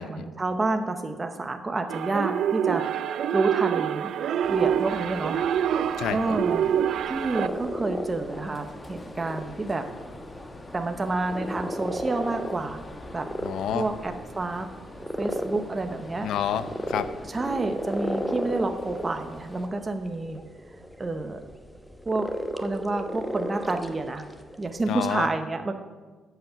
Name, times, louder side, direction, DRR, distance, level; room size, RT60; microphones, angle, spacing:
voice 1, 0.0-5.4 6.1-6.7 7.0-9.9 10.7-12.8 13.1-13.3 13.7-14.7 15.2-16.3 17.3-20.4 21.0-21.4 22.1-24.2 24.6-25.7, right 2 dB, 25° right, 6 dB, 0.9 m, -29 dB
sound 1, 1.9-7.5, right 9 dB, 70° right, 0.4 m, -26 dB
sound 2, 4.4-19.7, left 2 dB, 25° left, 1.4 m, -44 dB
voice 2, 6.0-6.4 13.4-13.9 16.2-17.1 24.9-25.3, left 9 dB, 80° left, 12 dB, 0.6 m, -29 dB
sound 3, 7.4-24.9, equal, ahead, 1.0 m, -35 dB
14.0 x 8.1 x 5.8 m, 1.4 s
cardioid pair, 90°, 0 cm